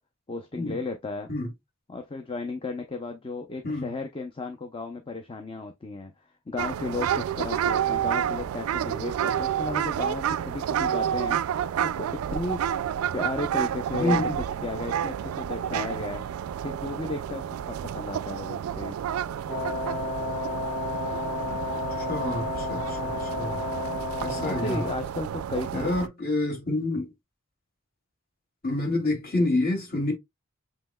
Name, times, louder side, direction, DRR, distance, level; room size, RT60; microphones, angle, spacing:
voice 1, 0.3-1.3 1.9-6.1 6.5-11.4 11.8-12.7 13.1-14.2 14.6-16.2 16.6-19.0 24.4-25.9, left 3 dB, 25° left, 0.5 m, -34 dB
sound 1, 6.6-26.1, right 9 dB, 80° right, 0.3 m, -30 dB
voice 2, 13.9-14.4 21.5-21.6 22.1-23.6 24.2-24.8 25.7-27.1 28.6-30.1, left 2 dB, 45° left, 2.6 m, -28 dB
Wind instrument woodwind instrument, 19.5-25.2, left 3 dB, 5° left, 1.9 m, -32 dB
7.5 x 3.0 x 2.2 m
head